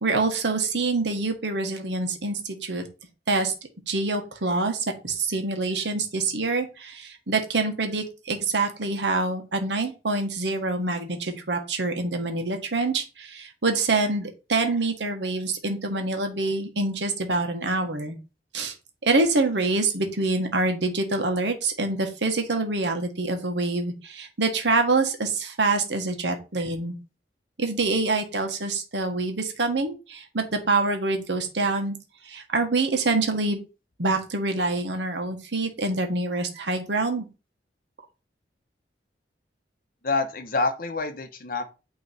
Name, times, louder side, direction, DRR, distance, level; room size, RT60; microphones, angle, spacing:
voice 1, 0.0-2.9 3.3-3.5 3.9-4.8 5.0-18.2 18.5-18.7 19.0-26.9 27.6-32.0 32.2-33.6 34.0-37.3, right 3 dB, 85° right, 5 dB, 1.3 m, -26 dB
voice 2, 40.0-41.6, left 3 dB, 55° left, 7 dB, 1.0 m, -27 dB
8.8 x 3.1 x 4.2 m, 0.31 s
head